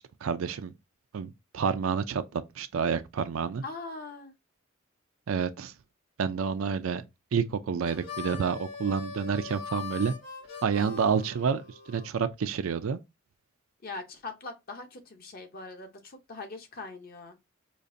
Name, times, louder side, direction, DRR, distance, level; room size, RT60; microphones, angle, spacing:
voice 1, 0.2-0.7 1.1-3.6 5.3-5.7 6.2-7.0 7.3-10.1 10.6-13.0, right 6 dB, 75° right, 0.4 m, -29 dB
voice 2, 3.6-4.3 13.8-17.4, left 3 dB, 45° left, 0.8 m, -41 dB
Harmonica, 7.8-12.1, left 6 dB, 65° left, 2.3 m, -41 dB
5.2 x 2.5 x 2.5 m
head